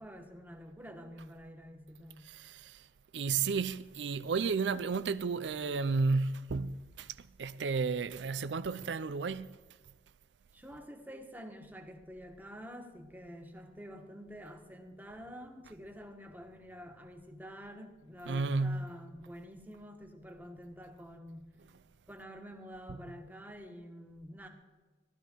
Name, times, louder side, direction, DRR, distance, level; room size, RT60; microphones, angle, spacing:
voice 1, 0.0-2.3 10.5-21.5 22.1-24.5, equal, 10° right, 1.4 m, -48 dB
voice 2, 2.3-2.9 3.1-9.6 18.3-18.9, right 4 dB, 90° right, 0.5 m, -32 dB
16.0 x 12.0 x 4.6 m
head